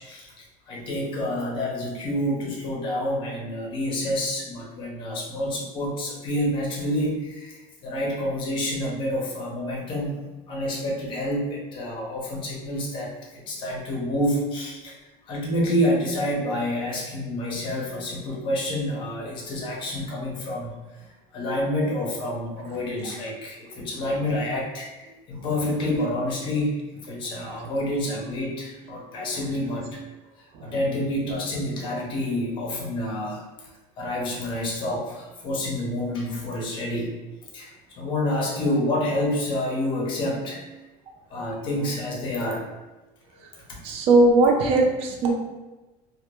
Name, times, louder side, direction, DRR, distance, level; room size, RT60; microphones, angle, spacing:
voice 1, 0.0-14.9 15.3-21.0 21.3-30.0 30.6-33.4 34.0-37.3 37.5-40.6 41.3-42.7 43.7-43.8, left 1 dB, 45° left, -2 dB, 0.7 m, -28 dB
voice 2, 43.8-45.3, right 2 dB, 55° right, 2 dB, 0.5 m, -18 dB
2.1 x 2.0 x 2.9 m, 1.1 s
cardioid pair, 135°, 12 cm